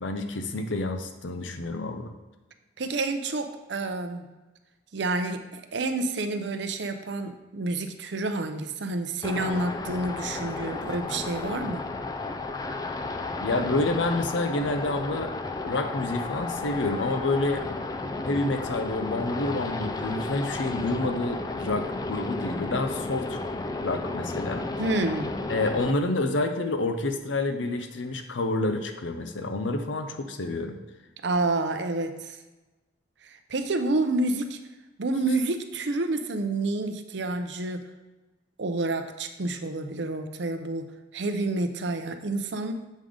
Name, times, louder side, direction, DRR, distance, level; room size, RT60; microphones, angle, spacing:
voice 1, 0.0-2.1 13.4-15.3 15.6-17.6 18.2-23.4 23.8-24.7 25.5-30.8, left 2 dB, 75° left, 7 dB, 0.7 m, -28 dB
voice 2, 2.8-4.3 4.9-11.8 24.8-25.3 31.2-32.4 33.5-34.6 35.0-37.8 38.6-42.7, right 2 dB, 65° right, 7 dB, 0.6 m, -29 dB
sound 1, 9.2-25.9, left 3 dB, 20° left, 0.3 m, -33 dB
7.4 x 3.7 x 5.0 m, 1.1 s
head